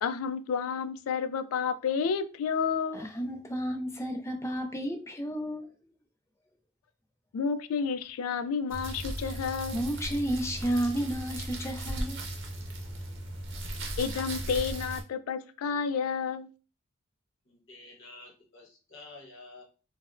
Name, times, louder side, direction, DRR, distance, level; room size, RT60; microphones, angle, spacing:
voice 1, 0.0-3.1 7.3-10.0 14.0-16.5, left 6 dB, 80° left, 0.3 m, -30 dB
voice 2, 2.9-5.7 9.7-12.2, right 1 dB, 15° left, 0.4 m, -32 dB
sound 1, 8.7-15.0, right 1 dB, 55° right, 0.7 m, -37 dB
voice 3, 17.4-19.6, left 3 dB, 60° left, 0.9 m, -50 dB
4.1 x 2.0 x 2.5 m
head